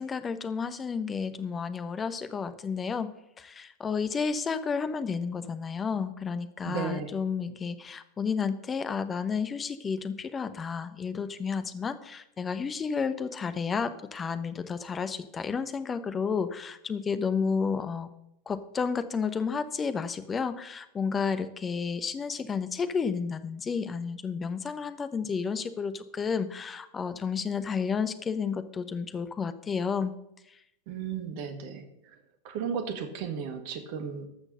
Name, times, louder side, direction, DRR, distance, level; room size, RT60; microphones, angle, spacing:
voice 1, 0.0-3.1 3.4-18.1 18.5-30.1 30.5-30.6, left 5 dB, 20° left, 12 dB, 0.8 m, -31 dB
voice 2, 6.6-7.1 30.9-32.1 32.4-34.3, right 7 dB, 45° right, 7 dB, 1.5 m, -35 dB
13.0 x 6.2 x 6.6 m, 0.81 s
figure-of-eight pair, 90°, 0 cm